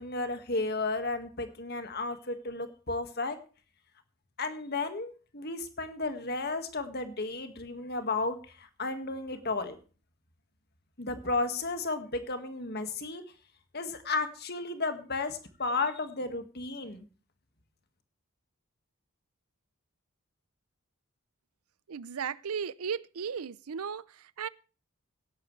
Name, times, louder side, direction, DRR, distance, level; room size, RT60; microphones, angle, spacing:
voice 1, 0.0-3.4 4.4-9.8 11.0-13.2 13.7-17.0, left 3 dB, 45° left, 1.8 m, -33 dB
voice 2, 21.9-24.5, right 7 dB, 85° right, 0.6 m, -36 dB
17.0 x 11.0 x 3.2 m
head